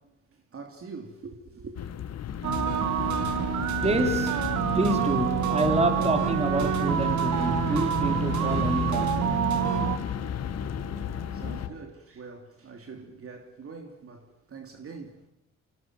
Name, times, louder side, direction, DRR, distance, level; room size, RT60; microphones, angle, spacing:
voice 1, 0.0-1.9 10.8-15.3, right 4 dB, 50° right, 2.9 m, -44 dB
sound 1, 1.8-11.7, left 9 dB, 55° left, 1.5 m, -34 dB
sound 2, 2.4-10.0, right 9 dB, 70° right, 1.8 m, -27 dB
voice 2, 3.8-9.2, right 1 dB, 20° right, 4.0 m, -28 dB
sound 3, 7.6-11.7, left 6 dB, 40° left, 4.8 m, -38 dB
27.0 x 17.0 x 9.4 m
cardioid pair, 90°, 30 cm